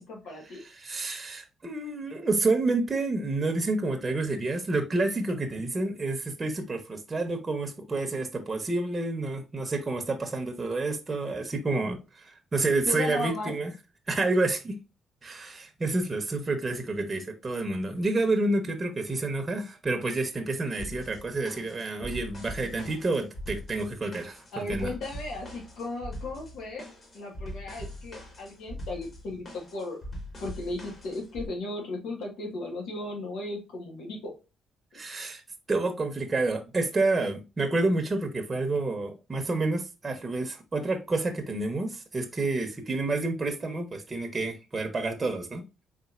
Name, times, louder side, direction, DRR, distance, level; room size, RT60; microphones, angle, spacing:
voice 1, 0.0-0.6 12.8-13.5 24.5-26.9 27.1-30.0 30.4-34.3, left 2 dB, 85° left, 1.4 m, -36 dB
voice 2, 0.6-13.7 14.1-14.7 15.2-24.9 34.9-35.4 35.7-45.6, right 2 dB, 25° right, 0.9 m, -29 dB
sound 1, 20.8-31.5, equal, 40° left, 2.3 m, -42 dB
4.1 x 3.7 x 2.4 m
cardioid pair, 90°, 0 cm